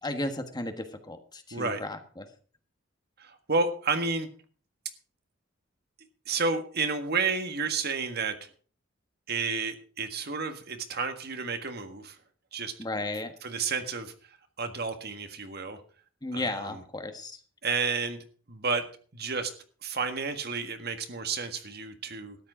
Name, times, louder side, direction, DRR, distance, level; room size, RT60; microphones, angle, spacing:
voice 1, 0.0-2.3 12.8-13.3 16.2-17.4, left 2 dB, 20° left, 7 dB, 1.4 m, -34 dB
voice 2, 1.5-1.8 3.2-4.3 6.3-8.5 9.3-12.2 12.5-12.7 13.4-14.1 14.6-15.8 16.3-16.7 17.6-18.8 19.1-19.5 19.8-22.4, right 4 dB, 55° right, 7 dB, 1.6 m, -31 dB
13.0 x 10.5 x 5.0 m, 0.42 s
head